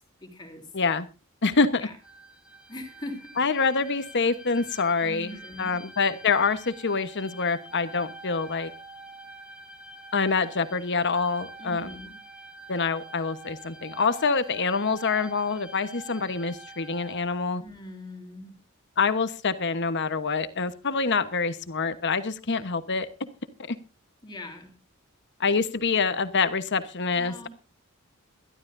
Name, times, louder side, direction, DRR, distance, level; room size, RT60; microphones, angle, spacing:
voice 1, 0.2-0.7 1.8-1.9 2.7-3.3 5.0-5.7 11.6-12.1 17.6-18.5 24.2-24.7 27.2-27.5, left 1 dB, 20° left, 3 dB, 3.2 m, -41 dB
voice 2, 0.7-1.1 1.4-1.9 3.4-8.7 10.1-11.9 12.7-17.6 19.0-23.1 23.7-23.8 25.4-27.5, left 4 dB, 55° left, 11 dB, 1.1 m, -26 dB
sound 1, 2.0-17.2, right 2 dB, 5° right, 1.3 m, -46 dB
22.5 x 12.5 x 2.6 m, 0.30 s
head